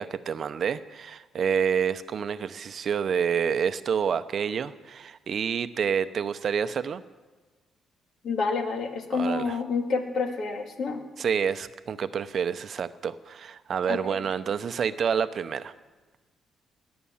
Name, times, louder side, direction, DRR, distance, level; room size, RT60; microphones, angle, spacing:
voice 1, 0.0-7.0 9.1-9.6 11.2-15.7, right 7 dB, 55° right, 12 dB, 0.7 m, -28 dB
voice 2, 8.2-11.0 13.9-14.0, left 4 dB, 65° left, 5 dB, 2.0 m, -28 dB
18.5 x 9.6 x 7.2 m, 1.3 s
cardioid pair, 90°, 0 cm